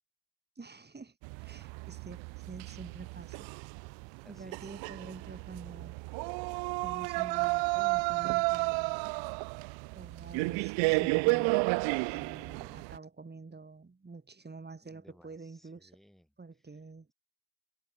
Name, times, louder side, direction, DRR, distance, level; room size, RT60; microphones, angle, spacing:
voice 1, 0.6-1.2 1.4-3.5 4.3-6.0 6.7-9.0 10.0-11.7 12.1-15.9 16.4-17.1, right 4 dB, 25° right, 3.0 m, -47 dB
sound 1, 1.2-13.0, right 29 dB, 80° right, 0.8 m, -32 dB
voice 2, 4.2-4.6 14.8-16.3 16.7-16.8, equal, ahead, 5.4 m, -61 dB
hypercardioid pair, 55°, 44 cm